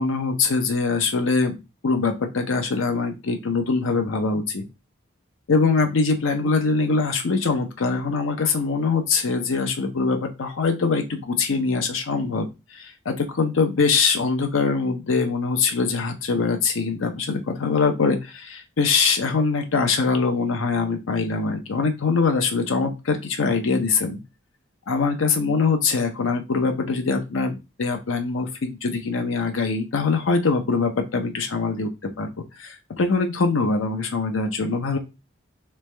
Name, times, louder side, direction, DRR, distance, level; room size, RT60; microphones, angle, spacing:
voice 1, 0.0-1.6 1.8-4.6 5.5-24.2 24.9-31.9 32.2-35.0, left 4 dB, 80° left, 5 dB, 0.6 m, -23 dB
3.3 x 3.1 x 3.3 m, 0.26 s
head